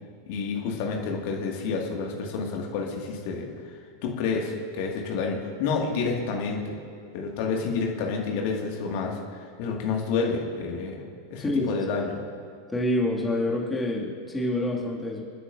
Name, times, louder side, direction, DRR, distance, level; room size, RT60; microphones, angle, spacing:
voice 1, 0.3-3.5 4.0-6.8 7.1-9.2 9.6-11.0 11.3-12.2, left 4 dB, 45° left, 0 dB, 2.0 m, -29 dB
voice 2, 11.4-11.7 12.7-15.2, left 1 dB, 10° left, -3 dB, 2.2 m, -27 dB
28.5 x 9.8 x 2.6 m, 2.4 s
figure-of-eight pair, 90°, 0 cm